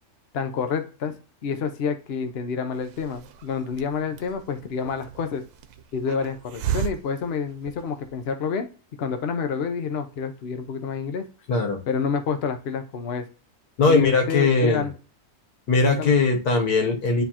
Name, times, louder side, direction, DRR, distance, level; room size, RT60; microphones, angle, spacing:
voice 1, 0.3-1.2 1.4-5.4 5.9-8.7 9.0-11.2 11.9-13.2 13.8-14.9 15.8-16.2, left 6 dB, 50° left, 7 dB, 0.9 m, -28 dB
Hiss, 2.7-8.2, right 10 dB, 80° right, 1.1 m, -35 dB
voice 2, 11.5-11.8 13.8-14.8 15.7-17.2, left 3 dB, 80° left, 3 dB, 1.6 m, -20 dB
9.8 x 3.4 x 2.9 m, 0.38 s
omnidirectional pair, 1.6 m